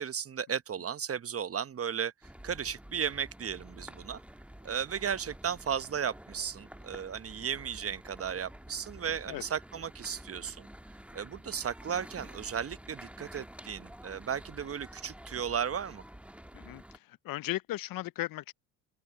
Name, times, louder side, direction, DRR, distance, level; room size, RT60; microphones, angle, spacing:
voice 1, 0.0-2.1 2.4-4.2 4.6-10.7 11.1-16.0, right 8 dB, 30° right, 1.0 m, -35 dB
sound 1, 2.2-17.0, right 1 dB, 5° right, 1.5 m, -50 dB
voice 2, 16.5-18.5, left 16 dB, 45° left, 0.7 m, -37 dB
open air
hypercardioid pair, 60°, 49 cm